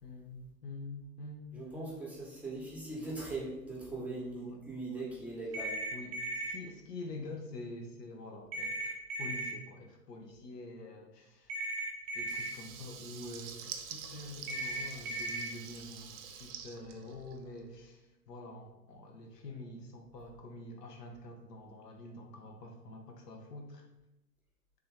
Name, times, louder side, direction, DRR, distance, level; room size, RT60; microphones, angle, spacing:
voice 1, 0.0-1.9 4.0-4.6 4.9-5.1 5.9-11.6 12.1-23.8, left 2 dB, 75° left, 2 dB, 0.9 m, -47 dB
voice 2, 1.5-5.8, right 2 dB, 5° right, -6 dB, 0.9 m, -40 dB
sound 1, 5.5-6.5 8.5-9.5 11.5-12.5 14.5-15.5, right 2 dB, 30° right, 1.0 m, -36 dB
Water tap faucet / Liquid, 12.2-17.7, right 7 dB, 50° right, 0.5 m, -47 dB
3.5 x 2.8 x 3.4 m, 0.94 s
hypercardioid pair, 110°, 49 cm